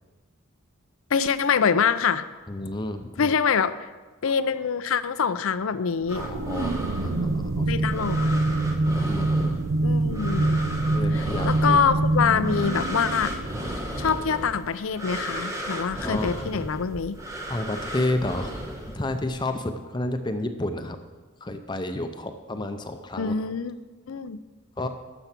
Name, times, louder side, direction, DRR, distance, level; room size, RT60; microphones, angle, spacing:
voice 1, 1.1-2.2 3.2-3.7 4.2-6.3 7.7-8.3 9.8-10.6 11.1-13.3 14.0-17.2 23.2-23.7 24.1-24.4, left 6 dB, 75° left, 13 dB, 0.5 m, -25 dB
voice 2, 2.5-3.3 6.1-7.8 9.0-9.6 10.9-11.8 16.0-16.7 17.5-18.6 18.8-21.0 21.4-23.3 24.8-24.9, left 1 dB, 20° left, 7 dB, 0.6 m, -31 dB
sound 1, 6.0-14.3, right 2 dB, 85° right, 0.7 m, -25 dB
sound 2, 6.1-19.4, equal, 15° right, 1.1 m, -35 dB
12.0 x 7.0 x 6.0 m, 1.3 s
head